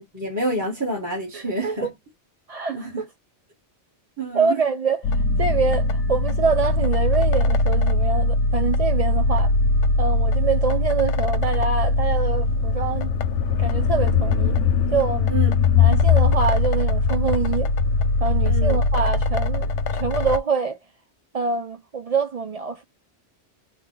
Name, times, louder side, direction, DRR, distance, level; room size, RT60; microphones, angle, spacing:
voice 1, 0.1-1.9 2.7-3.0 4.2-4.6 15.3-15.5 18.4-18.8, right 2 dB, 15° right, 1.1 m, -28 dB
voice 2, 1.3-1.8 2.5-3.1 4.3-9.5 10.0-13.1 13.6-14.6 14.9-15.3 15.8-17.7 18.2-20.8 21.3-22.8, right 5 dB, 60° right, 0.4 m, -25 dB
sound 1, 5.0-20.4, left 3 dB, 85° left, 0.9 m, -21 dB
3.3 x 2.2 x 3.7 m
omnidirectional pair, 1.2 m